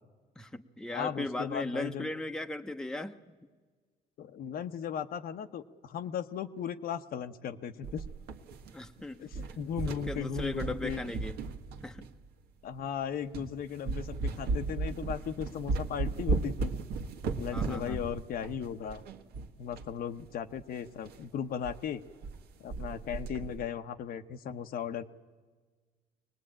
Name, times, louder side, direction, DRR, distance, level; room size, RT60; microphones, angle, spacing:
voice 1, 0.4-3.2 8.7-9.2 9.9-11.4 11.8-12.0 17.5-18.0, left 1 dB, 5° left, 6 dB, 0.9 m, -37 dB
voice 2, 0.9-2.1 4.2-8.0 9.2-11.0 12.6-16.7 17.4-19.0 19.6-22.0 22.6-25.0, left 8 dB, 60° left, 8 dB, 1.0 m, -37 dB
sound 1, 7.8-9.0 9.3-12.3 12.8-12.9 13.3-13.5 13.9-19.9 20.2-20.3 20.5-20.6 21.1-21.2 21.6-21.8 22.0-22.4 22.7-23.7, right 3 dB, 70° right, 1.6 m, -35 dB
24.5 x 19.5 x 8.8 m, 1.4 s
cardioid pair, 110°, 17 cm